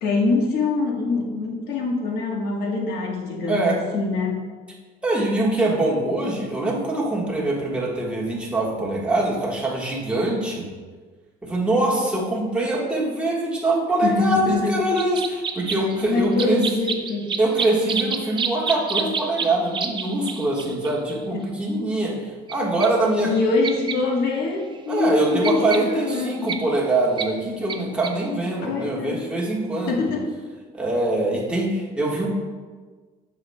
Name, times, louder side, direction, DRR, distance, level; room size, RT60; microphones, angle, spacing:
voice 1, 0.0-4.4 14.0-14.8 16.0-17.3 21.3-21.5 23.2-26.6 28.6-29.2 29.9-30.3, left 3 dB, 75° left, 0 dB, 1.3 m, -24 dB
voice 2, 3.5-3.8 5.0-10.6 11.4-16.6 17.4-23.3 24.9-30.1 30.7-32.3, right 2 dB, 5° right, -4 dB, 1.4 m, -23 dB
sound 1, 15.0-21.2 22.5-22.6 22.8-22.9 23.6-23.9 24.4-24.5 24.8-26.6 27.2-27.3 27.7-27.8 28.0-28.1, right 5 dB, 30° right, 0.5 m, -29 dB
7.9 x 5.5 x 2.2 m, 1.4 s
cardioid pair, 110°, 17 cm